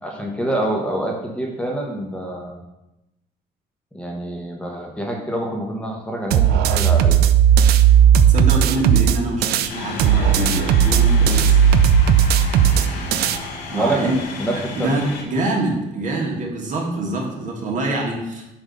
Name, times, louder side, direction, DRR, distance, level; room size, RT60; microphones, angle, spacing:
voice 1, 0.0-2.6 3.9-7.2 13.7-15.0, right 1 dB, 5° left, 0 dB, 0.9 m, -26 dB
sound 1, 6.3-9.7 10.0-13.4, right 8 dB, 70° right, 0.4 m, -15 dB
voice 2, 8.3-11.6 13.7-14.2 14.8-18.4, right 2 dB, 50° right, -1 dB, 1.4 m, -25 dB
sound 2, 9.7-15.2, left 3 dB, 85° left, 1.1 m, -32 dB
7.4 x 2.7 x 5.1 m, 0.94 s
cardioid pair, 110°, 17 cm